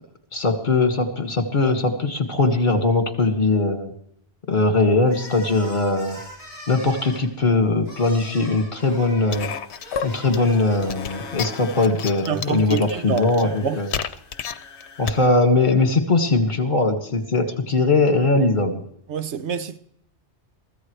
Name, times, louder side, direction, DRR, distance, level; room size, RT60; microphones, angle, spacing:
voice 1, 0.3-3.9 4.5-6.2 6.7-9.5 10.0-13.9 15.0-18.8, left 3 dB, 45° left, 2.0 m, -20 dB
sound 1, 5.0-11.7, equal, 60° right, 8.4 m, -41 dB
sound 2, 9.3-15.2, left 7 dB, 70° left, 1.0 m, -33 dB
voice 2, 12.2-13.8 19.1-19.8, right 7 dB, 80° right, 1.1 m, -27 dB
22.5 x 15.5 x 3.2 m
omnidirectional pair, 1.2 m